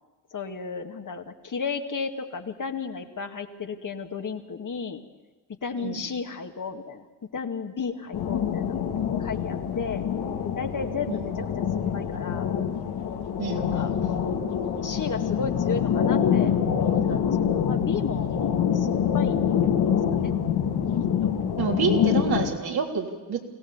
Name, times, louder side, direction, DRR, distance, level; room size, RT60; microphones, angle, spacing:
voice 1, 0.3-5.0 5.6-7.1 7.3-8.8 9.2-10.0 10.4-11.6 11.9-12.5 13.5-13.9 14.8-16.5 16.8-18.3 18.7-19.5 19.9-20.3 21.2-21.3, left 5 dB, 45° left, 5 dB, 2.2 m, -33 dB
sound 1, 8.1-22.5, left 8 dB, 65° left, 2.1 m, -25 dB
voice 2, 13.4-14.2 21.6-23.4, right 5 dB, 60° right, 1 dB, 3.5 m, -28 dB
23.0 x 17.0 x 7.3 m, 1.3 s
hypercardioid pair, 45°, 42 cm